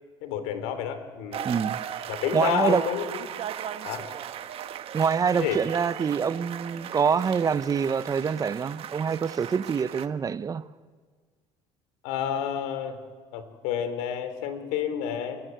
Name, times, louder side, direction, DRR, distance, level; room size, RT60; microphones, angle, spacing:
voice 1, 0.2-1.5 2.1-3.3 3.8-4.1 5.3-5.6 12.0-13.0 13.3-15.4, left 9 dB, 85° left, 2.9 m, -30 dB
sound 1, 1.3-10.1, right 10 dB, 50° right, 1.3 m, -37 dB
voice 2, 1.4-1.8 2.3-2.8 4.9-10.6, right 6 dB, 30° right, 0.8 m, -25 dB
27.5 x 15.5 x 9.1 m
cardioid pair, 110°, 12 cm